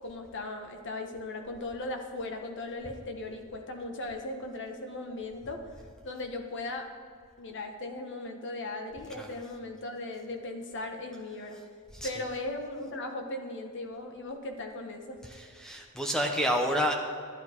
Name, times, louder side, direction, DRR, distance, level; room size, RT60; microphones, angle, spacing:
voice 1, 0.0-6.9 7.4-11.6 12.0-15.2, left 2 dB, 55° left, 4 dB, 1.3 m, -38 dB
voice 2, 15.2-16.9, equal, 5° left, 2 dB, 0.8 m, -29 dB
12.0 x 10.5 x 4.5 m, 2.2 s
head